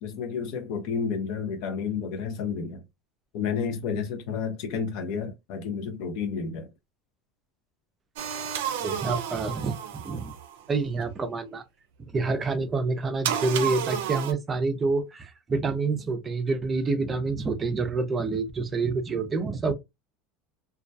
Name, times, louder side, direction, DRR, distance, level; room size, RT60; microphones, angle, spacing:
voice 1, 0.0-2.8 3.3-6.7, left 6 dB, 60° left, 0.5 m, -31 dB
sound 1, 8.2-10.6 13.2-14.3, right 9 dB, 90° right, 0.4 m, -31 dB
voice 2, 8.8-10.3 10.7-11.6 12.0-19.7, right 3 dB, 20° right, 0.4 m, -27 dB
2.2 x 2.2 x 2.5 m
supercardioid pair, 145°, 0 cm